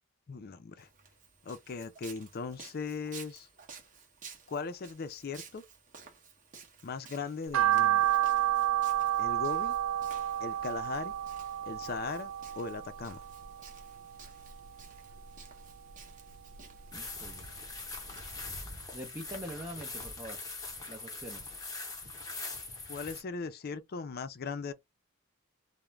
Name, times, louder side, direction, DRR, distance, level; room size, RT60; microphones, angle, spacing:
voice 1, 0.3-0.9 1.4-3.5 4.5-5.6 6.8-8.1 9.2-9.8 10.4-11.1 11.6-13.3 22.9-24.7, left 4 dB, 50° left, 0.4 m, -39 dB
Walk footsteps, 0.8-18.2, right 5 dB, 40° right, 0.8 m, -54 dB
sound 1, 7.5-13.8 14.2-15.4 15.7-17.1 17.5-17.6 18.1-18.2 18.4-18.5, right 12 dB, 75° right, 0.4 m, -30 dB
sound 2, 16.9-23.2, left 3 dB, 20° left, 0.8 m, -42 dB
voice 2, 16.9-17.5 18.9-20.4 20.9-21.5, right 1 dB, 15° right, 0.5 m, -44 dB
2.4 x 2.1 x 3.0 m
head